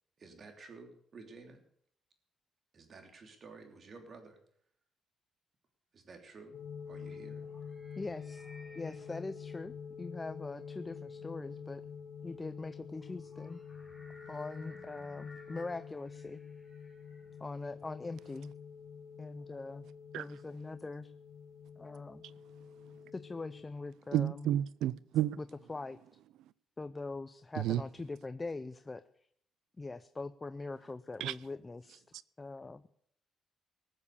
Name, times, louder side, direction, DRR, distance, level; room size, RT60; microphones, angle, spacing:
voice 1, 0.2-1.6 2.7-4.4 5.9-6.6 6.9-7.4, right 4 dB, 50° right, 3.0 m, -52 dB
sound 1, 6.4-17.8, left 1 dB, ahead, 4.1 m, -59 dB
sound 2, 6.5-23.6, left 6 dB, 75° left, 1.1 m, -48 dB
voice 2, 8.0-8.5 8.7-11.8 12.2-13.6 14.3-16.4 17.4-18.5 19.2-19.9 20.2-21.1 21.8-22.2 23.1-24.5 25.4-26.0 26.8-29.0 29.8-32.0 32.4-32.9, left 3 dB, 25° left, 0.5 m, -42 dB
voice 3, 24.1-25.4 27.6-27.8 31.2-31.3, right 12 dB, 85° right, 0.4 m, -31 dB
18.5 x 7.3 x 6.9 m
cardioid pair, 90°, 0 cm